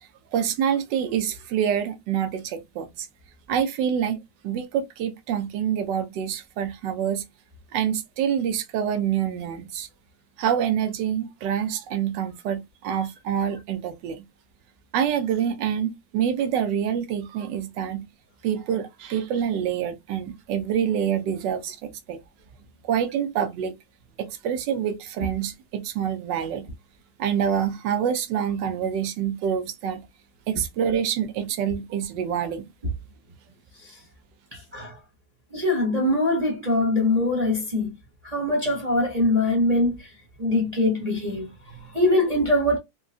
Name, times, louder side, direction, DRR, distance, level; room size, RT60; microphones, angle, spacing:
voice 1, 0.0-3.1 3.5-4.2 4.4-7.2 7.7-9.9 10.4-14.3 14.9-18.1 18.4-22.2 22.8-23.8 24.2-26.7 27.2-30.0 30.5-32.7, right 8 dB, 70° right, 1.2 m, -26 dB
voice 2, 34.5-35.0 35.5-37.9 38.2-40.1 40.4-42.8, left 1 dB, 50° right, 0.4 m, -23 dB
3.8 x 2.3 x 2.3 m
omnidirectional pair, 2.1 m